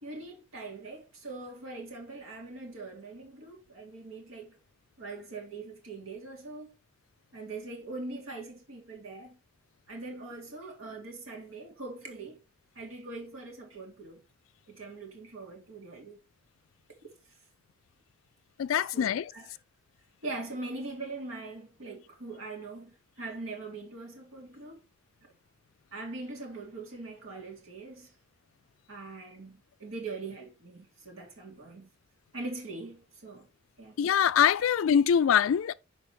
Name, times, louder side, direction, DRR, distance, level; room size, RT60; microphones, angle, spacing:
voice 1, 0.0-4.6 5.0-6.7 7.3-9.4 9.9-12.4 12.7-14.2 14.7-16.2 18.8-19.6 20.2-24.8 25.9-28.1 28.9-31.9 32.3-33.5 33.8-34.0, right 3 dB, 80° right, 2.4 m, -42 dB
voice 2, 18.6-19.2 34.0-35.7, left 8 dB, 70° left, 0.3 m, -23 dB
5.7 x 4.0 x 4.5 m
head